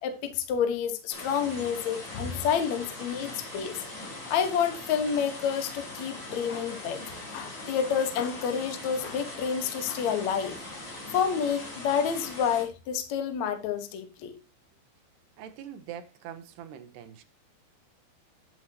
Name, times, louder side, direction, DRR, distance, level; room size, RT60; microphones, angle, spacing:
voice 1, 0.0-3.8 4.3-7.0 7.3-10.6 11.1-14.4, left 7 dB, 60° left, 1.9 m, -29 dB
sound 1, 1.1-12.6, left 2 dB, 25° left, 3.8 m, -41 dB
voice 2, 15.4-17.2, right 9 dB, 70° right, 3.0 m, -43 dB
11.0 x 9.4 x 2.9 m
omnidirectional pair, 5.2 m